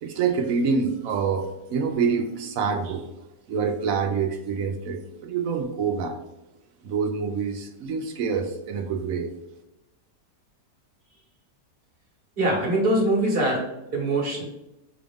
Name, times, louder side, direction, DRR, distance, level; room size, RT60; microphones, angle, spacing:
voice 1, 0.0-3.0 3.5-6.2 6.8-9.3, right 5 dB, 70° right, 4 dB, 0.9 m, -26 dB
voice 2, 12.4-13.6 13.9-14.4, right 1 dB, 40° right, -2 dB, 1.1 m, -22 dB
6.0 x 2.5 x 3.4 m, 0.91 s
omnidirectional pair, 1.8 m